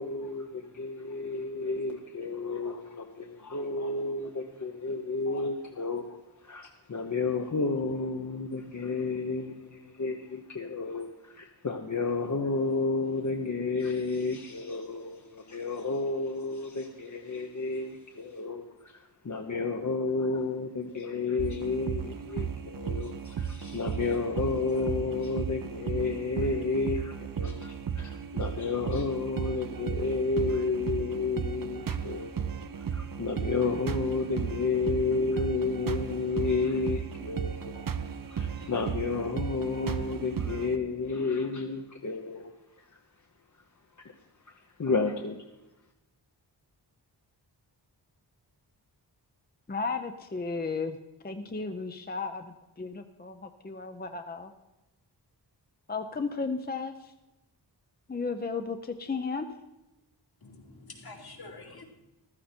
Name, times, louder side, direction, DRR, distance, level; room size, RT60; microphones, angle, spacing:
voice 1, 0.0-42.5 42.9-43.0 44.5-45.4, left 3 dB, 45° left, 3 dB, 1.0 m, -31 dB
sound 1, 21.4-40.8, right 7 dB, 50° right, 0.8 m, -35 dB
voice 2, 49.7-51.0 51.2-54.5 55.9-57.1 58.1-59.5, left 4 dB, 20° left, 7 dB, 0.6 m, -34 dB
voice 3, 60.4-61.8, left 3 dB, 60° left, 1 dB, 2.5 m, -47 dB
15.0 x 13.0 x 4.4 m, 0.97 s
wide cardioid pair, 115°, 42 cm